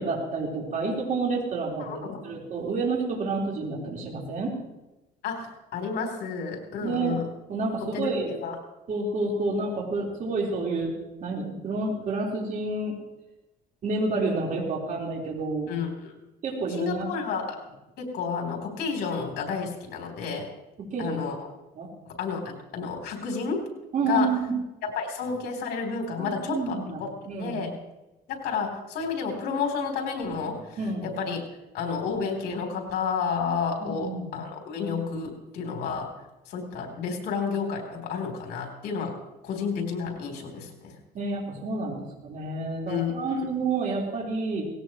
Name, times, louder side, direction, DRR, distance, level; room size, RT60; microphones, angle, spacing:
voice 1, 0.0-4.5 6.8-7.2 7.5-8.3 8.9-10.9 11.2-13.0 13.8-15.7 16.4-17.1 20.9-21.2 21.7-21.9 23.9-24.5 26.2-27.6 30.8-31.1 33.8-34.3 41.1-44.7, right 3 dB, 50° right, -2 dB, 4.4 m, -29 dB
voice 2, 1.8-2.4 5.2-7.3 7.8-8.6 15.7-16.1 16.8-17.6 18.0-20.5 21.0-21.5 22.1-23.7 24.0-24.3 24.8-27.1 27.4-27.7 28.3-31.4 31.7-36.1 36.5-39.2 39.4-41.0 42.9-43.5, left 5 dB, 70° left, 2 dB, 3.7 m, -31 dB
19.0 x 17.0 x 3.1 m, 0.99 s
cardioid pair, 110°, 17 cm